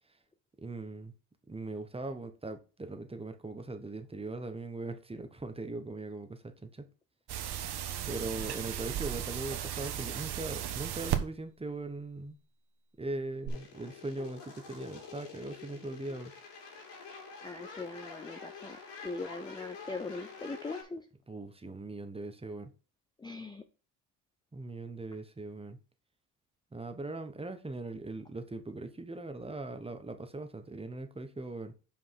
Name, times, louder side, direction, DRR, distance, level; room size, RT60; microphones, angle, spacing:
voice 1, 0.6-1.1 1.5-6.9 8.1-12.4 13.0-16.3 21.3-22.7 24.5-25.8 26.7-31.7, right 2 dB, 15° right, 1.1 m, -40 dB
sound 1, 7.3-11.2 13.4-13.5, right 11 dB, 70° right, 1.3 m, -35 dB
sound 2, 13.5-20.8, left 5 dB, 85° left, 3.5 m, -47 dB
voice 2, 17.4-21.1 23.2-23.6, left 3 dB, 10° left, 0.6 m, -41 dB
5.5 x 5.3 x 5.8 m
cardioid pair, 115°, 41 cm